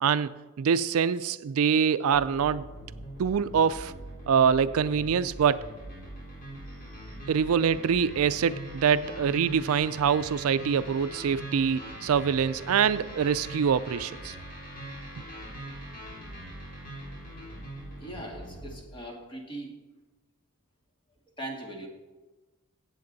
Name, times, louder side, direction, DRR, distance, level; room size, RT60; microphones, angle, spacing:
voice 1, 0.0-2.7 3.2-3.9 4.3-5.7 7.3-14.4, right 7 dB, 70° right, 14 dB, 0.4 m, -25 dB
sound 1, 2.1-18.8, right 1 dB, 40° left, 3.6 m, -42 dB
voice 2, 18.0-19.7 21.4-21.9, right 1 dB, 20° left, 1 dB, 1.8 m, -40 dB
16.0 x 7.7 x 4.0 m, 1.2 s
head